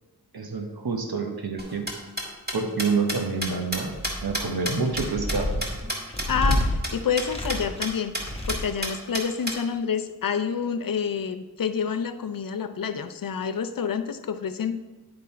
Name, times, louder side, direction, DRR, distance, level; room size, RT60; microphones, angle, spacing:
voice 1, 0.3-1.9 2.5-3.9 4.2-5.7, right 4 dB, 65° right, 3 dB, 1.1 m, -27 dB
sound 1, 1.6-6.3 6.5-6.6 6.8-6.9 7.2-7.3 7.5-7.9 8.1-8.2 8.5-9.6, right 1 dB, 25° right, 1.7 m, -30 dB
sound 2, 3.8-4.4 4.8-6.8 7.2-7.9 8.2-8.8, left 1 dB, 15° left, 1.1 m, -29 dB
voice 2, 6.3-8.2 8.5-14.7, left 6 dB, 60° left, 10 dB, 0.5 m, -28 dB
9.6 x 3.8 x 4.3 m, 1.2 s
wide cardioid pair, 55°, 39 cm